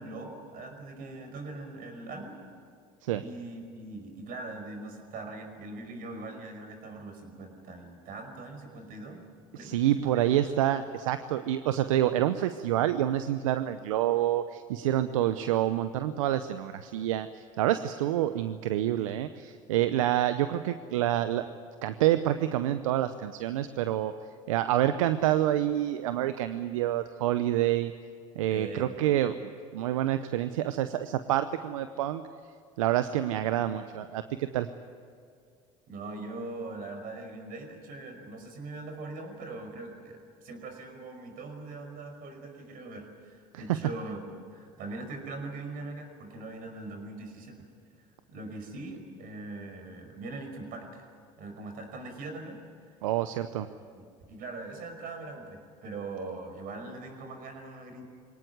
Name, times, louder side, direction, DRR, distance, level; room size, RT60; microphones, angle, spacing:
voice 1, 0.0-2.4 3.2-9.3 9.5-10.2 28.5-29.0 35.9-47.7 48.3-51.1 51.4-52.6 52.9-53.0 54.0-54.1 54.3-58.0, right 2 dB, 60° right, 5 dB, 5.4 m, -41 dB
voice 2, 9.5-17.3 17.6-21.5 21.8-24.1 24.5-27.9 28.4-29.3 29.7-32.2 32.8-34.7 43.5-43.6 53.0-53.7, right 12 dB, 80° right, 11 dB, 0.8 m, -27 dB
23.5 x 18.5 x 9.5 m, 2.3 s
hypercardioid pair, 75°, 17 cm